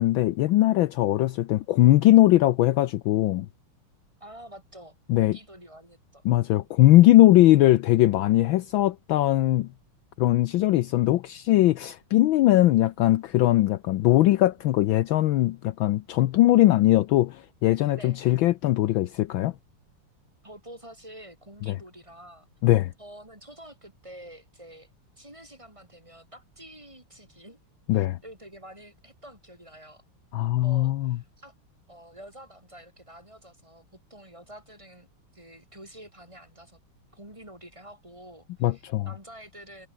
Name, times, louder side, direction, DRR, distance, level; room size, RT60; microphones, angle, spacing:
voice 1, 0.0-3.5 5.1-5.4 6.2-9.7 10.2-19.5 21.7-21.8 22.6-22.9 27.9-28.2 30.3-31.2 38.6-39.1, left 15 dB, 75° left, 1.3 m, -20 dB
voice 2, 4.2-6.2 17.9-18.4 20.4-22.5 23.0-24.9 25.2-27.6 27.9-30.0 30.6-31.5 31.9-33.9 34.1-35.1 35.3-36.8 37.1-39.9, right 1 dB, 15° right, 5.3 m, -48 dB
omnidirectional pair, 2.4 m